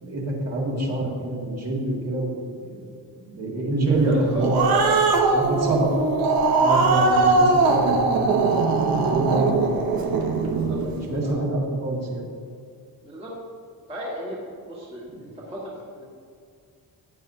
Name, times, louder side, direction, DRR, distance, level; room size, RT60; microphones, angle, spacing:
voice 1, 0.0-2.8 3.2-5.1 5.3-5.9 6.6-9.8 10.8-12.2 15.1-15.2, right 2 dB, 40° right, -3 dB, 2.1 m, -26 dB
voice 2, 4.0-4.5 6.9-7.2 7.5-7.8 10.4-10.8 11.2-11.4 13.0-13.3 13.9-14.4 14.7-16.0, equal, 15° right, -6 dB, 1.6 m, -35 dB
Growling, 4.1-10.9, right 3 dB, 60° right, 1.0 m, -21 dB
15.0 x 8.9 x 2.8 m, 2.2 s
cardioid pair, 170°, 40 cm